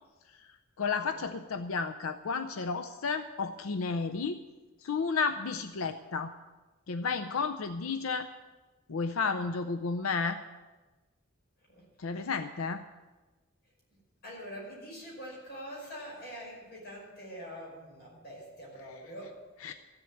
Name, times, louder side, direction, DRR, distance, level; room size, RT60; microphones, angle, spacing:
voice 1, 0.3-4.4 4.8-6.3 6.9-8.3 8.9-10.4 12.0-12.8 19.6-19.7, left 4 dB, 85° left, 9 dB, 0.6 m, -32 dB
voice 2, 1.0-1.4 11.7-11.9 12.1-12.4 13.9-19.5, equal, 50° left, -3 dB, 5.5 m, -45 dB
14.5 x 7.8 x 8.5 m, 1.2 s
head